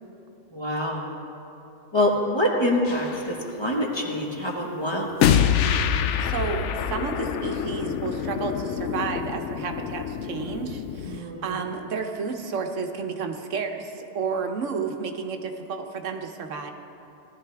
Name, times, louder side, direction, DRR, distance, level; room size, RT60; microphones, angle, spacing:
voice 1, 0.5-1.0 1.9-5.4 11.1-11.4, left 1 dB, 20° left, -2 dB, 1.5 m, -25 dB
sound 1, 2.9-3.2 5.2-11.2, left 8 dB, 75° left, 0.9 m, -26 dB
voice 2, 6.2-16.7, right 5 dB, 85° right, 5 dB, 1.2 m, -31 dB
18.0 x 12.0 x 3.4 m, 2.9 s
omnidirectional pair, 1.3 m